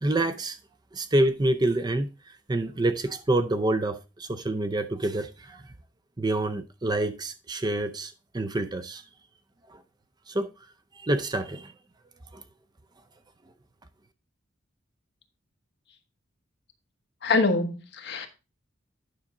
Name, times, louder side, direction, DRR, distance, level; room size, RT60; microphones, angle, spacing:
voice 1, 0.0-0.6 0.9-2.1 2.5-5.6 6.2-9.0 10.3-10.5 11.0-11.7 12.3-12.4, right 1 dB, 20° right, 0.5 m, -27 dB
voice 2, 17.2-18.3, left 3 dB, 60° left, 1.3 m, -25 dB
9.7 x 5.7 x 3.7 m
head